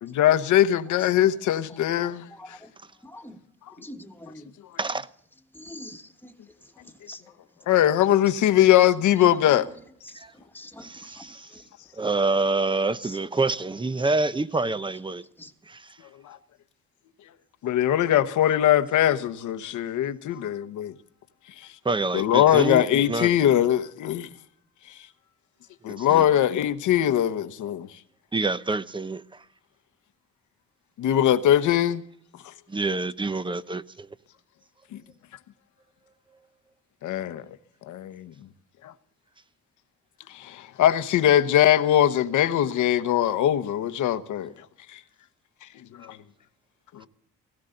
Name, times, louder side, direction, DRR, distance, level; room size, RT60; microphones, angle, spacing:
voice 1, 0.0-2.6 7.7-9.7 16.3-16.4 17.6-20.9 22.1-24.3 25.8-27.9 31.0-32.0 32.4-32.5 34.9-35.0 37.0-37.4 37.9-38.3 38.8-38.9 40.3-44.5 44.9-45.0 46.0-46.2 46.9-47.1, left 11 dB, 75° left, 1.0 m, -21 dB
voice 2, 1.7-2.7 3.0-3.4 3.8-4.5 5.5-6.3 7.1-7.3 9.2-9.6 10.0-10.2 10.5-11.2 11.5-11.6 13.0-13.2 15.4-15.5, left 1 dB, 5° left, 1.6 m, -44 dB
voice 3, 10.8-11.5 12.0-15.2 15.7-15.8 21.8-23.3 26.0-26.2 28.3-29.2 32.7-34.1, right 3 dB, 15° right, 0.8 m, -27 dB
17.0 x 16.5 x 3.8 m
cardioid pair, 90°, 30 cm